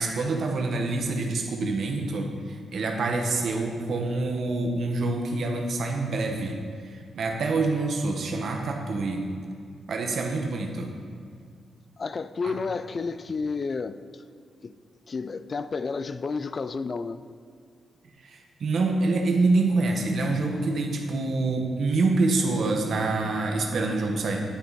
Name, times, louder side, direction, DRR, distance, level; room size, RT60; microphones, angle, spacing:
voice 1, 0.0-9.2 9.9-10.9 12.4-12.5 18.2-24.4, right 3 dB, 55° right, 2 dB, 1.3 m, -26 dB
voice 2, 12.0-14.2 14.6-14.8 15.1-17.2, left 4 dB, 35° left, 13 dB, 0.3 m, -31 dB
10.0 x 9.4 x 4.1 m, 2.2 s
wide cardioid pair, 160°, 0 cm